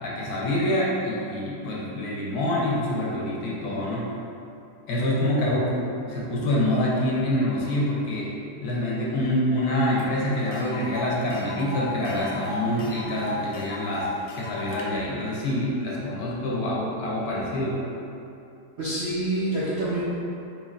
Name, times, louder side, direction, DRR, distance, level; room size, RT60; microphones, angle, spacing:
voice 1, 0.0-4.1 4.9-8.4 8.6-14.1 14.4-17.8, left 1 dB, 70° left, -5 dB, 1.1 m, -26 dB
Tick, 10.0-10.1 10.3-14.9, left 2 dB, 90° left, 0.6 m, -36 dB
voice 2, 18.8-20.0, right 1 dB, 65° right, -10 dB, 0.6 m, -27 dB
4.4 x 2.8 x 2.4 m, 2.7 s
omnidirectional pair, 1.8 m